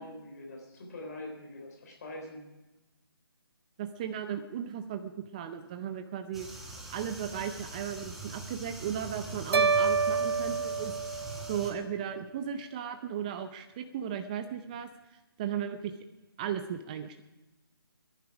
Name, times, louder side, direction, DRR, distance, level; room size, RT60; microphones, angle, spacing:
voice 1, 0.0-2.5, left 1 dB, 40° left, 1 dB, 3.8 m, -44 dB
voice 2, 3.8-6.5 6.9-15.9 16.4-17.2, right 9 dB, 20° right, 8 dB, 0.5 m, -36 dB
sound 1, 6.3-11.7, right 2 dB, ahead, 1.0 m, -43 dB
sound 2, 9.5-11.8, right 4 dB, 85° right, 0.6 m, -28 dB
21.5 x 10.5 x 4.9 m, 1.1 s
figure-of-eight pair, 160°, 13 cm